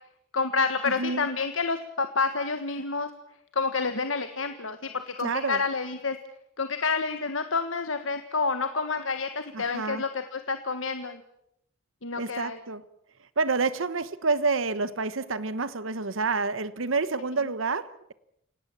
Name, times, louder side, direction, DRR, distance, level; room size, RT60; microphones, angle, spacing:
voice 1, 0.3-3.1 3.5-4.8 5.1-6.2 6.6-11.2 12.0-12.6, left 4 dB, 75° left, 8 dB, 1.5 m, -29 dB
voice 2, 1.0-1.3 5.2-5.6 9.5-10.0 12.1-12.8 13.4-18.1, right 4 dB, 75° right, 15 dB, 1.1 m, -28 dB
29.0 x 18.0 x 7.4 m, 0.76 s
head